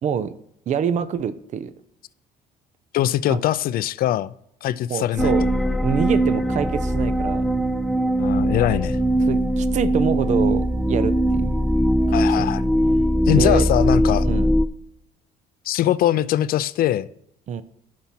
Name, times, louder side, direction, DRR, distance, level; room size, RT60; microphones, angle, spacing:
voice 1, 0.0-0.3 0.7-1.7 3.3-3.4 4.9-5.5 5.8-7.5 9.2-11.5 12.2-12.5 13.3-13.7 14.2-14.5 17.5-17.6, right 7 dB, 45° right, 14 dB, 0.6 m, -26 dB
voice 2, 2.9-4.3 4.6-5.3 8.2-9.0 12.1-12.6 13.3-14.3 15.7-17.1, left 12 dB, 60° left, 17 dB, 0.5 m, -22 dB
sound 1, 5.2-14.7, equal, ahead, 0.5 m, -20 dB
11.5 x 4.3 x 5.9 m, 0.74 s
cardioid pair, 110°, 17 cm